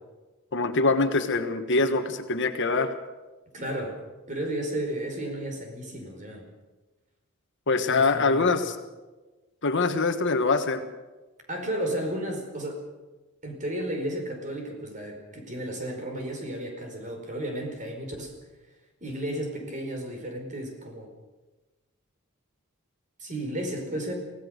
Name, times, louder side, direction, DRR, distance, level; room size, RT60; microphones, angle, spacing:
voice 1, 0.5-2.9 7.7-8.7 9.6-10.8, left 3 dB, 55° left, 7 dB, 1.5 m, -24 dB
voice 2, 3.5-4.0 4.3-6.4 7.9-8.5 11.5-12.8 13.4-18.3 19.0-21.1 23.2-24.1, right 1 dB, 35° right, 3 dB, 4.9 m, -33 dB
24.5 x 17.0 x 6.6 m, 1.2 s
head